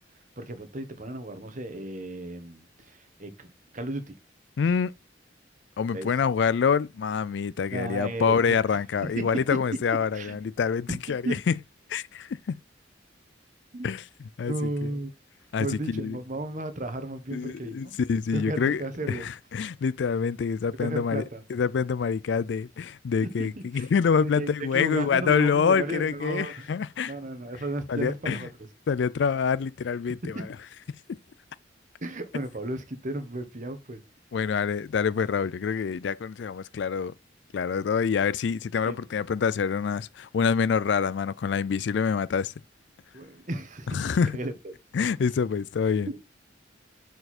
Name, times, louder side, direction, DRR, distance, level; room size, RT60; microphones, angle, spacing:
voice 1, 0.4-4.1 5.9-6.1 7.7-8.6 9.0-9.4 10.1-10.3 10.9-11.0 11.2-11.4 13.7-13.9 14.5-15.1 15.6-17.9 18.3-19.3 20.8-21.4 23.4-23.5 23.7-23.9 24.2-26.7 27.1-28.5 30.3-30.5 32.0-34.0 38.9-39.0 43.1-44.7 46.1-46.2, right 1 dB, 40° right, 1.2 m, -34 dB
voice 2, 4.6-4.9 5.8-11.5 11.9-12.6 13.8-14.0 14.4-14.5 15.5-16.2 17.3-18.8 19.1-21.2 21.5-27.1 27.9-28.5 28.9-30.6 34.3-37.1 37.5-42.5 43.9-44.4 44.9-46.1, left 6 dB, 65° left, 0.4 m, -26 dB
6.5 x 4.6 x 4.2 m
head